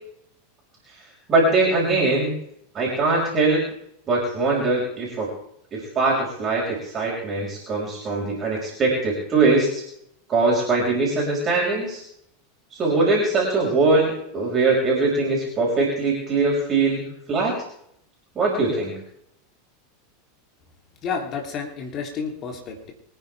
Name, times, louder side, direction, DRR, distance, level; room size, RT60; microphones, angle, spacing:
voice 1, 1.3-2.3 2.7-3.6 4.1-5.3 5.7-9.8 10.3-12.0 12.7-17.5 18.4-19.0, right 3 dB, 30° right, -3 dB, 5.7 m, -22 dB
voice 2, 21.0-22.9, left 5 dB, 35° left, 2 dB, 3.3 m, -30 dB
25.0 x 10.0 x 3.6 m, 0.71 s
figure-of-eight pair, 85°, 0 cm